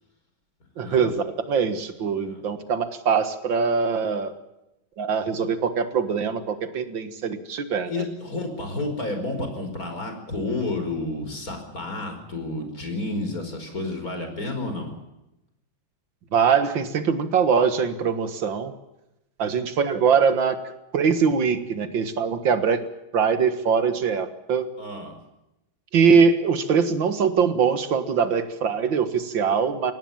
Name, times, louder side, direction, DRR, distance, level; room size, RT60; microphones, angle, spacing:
voice 1, 0.8-4.3 5.0-8.0 16.3-18.7 19.4-20.6 20.9-22.8 23.1-24.7 25.9-29.9, right 6 dB, 75° right, 10 dB, 2.3 m, -22 dB
voice 2, 7.9-14.9 24.8-25.2, left 2 dB, 45° left, 5 dB, 5.5 m, -30 dB
24.0 x 18.5 x 7.3 m, 0.90 s
omnidirectional pair, 2.1 m